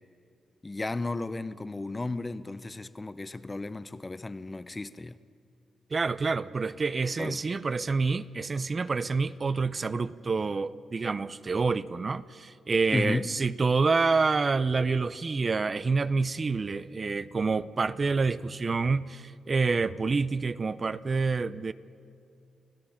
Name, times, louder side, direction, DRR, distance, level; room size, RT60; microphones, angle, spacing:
voice 1, 0.6-5.1 7.2-7.4 12.9-13.3, left 2 dB, 25° left, 0.7 m, -33 dB
voice 2, 5.9-21.7, right 4 dB, 40° right, 0.6 m, -27 dB
30.0 x 16.5 x 5.8 m
cardioid pair, 80°, 0 cm